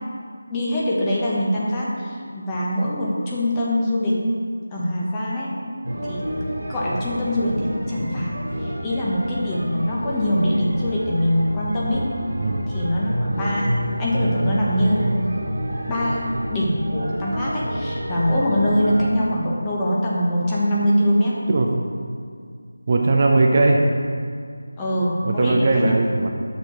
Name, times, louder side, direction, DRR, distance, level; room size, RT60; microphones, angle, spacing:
voice 1, 0.5-4.2 4.7-5.6 6.1-6.3 6.7-12.1 12.7-15.1 15.9-21.4 24.8-25.9, equal, 15° left, -6 dB, 1.1 m, -23 dB
sound 1, 5.8-19.1, equal, 55° right, 1.8 m, -28 dB
voice 2, 22.9-23.8 25.2-26.3, right 2 dB, 35° right, 1 dB, 0.7 m, -18 dB
7.1 x 6.4 x 4.4 m, 2.1 s
figure-of-eight pair, 165°, 0 cm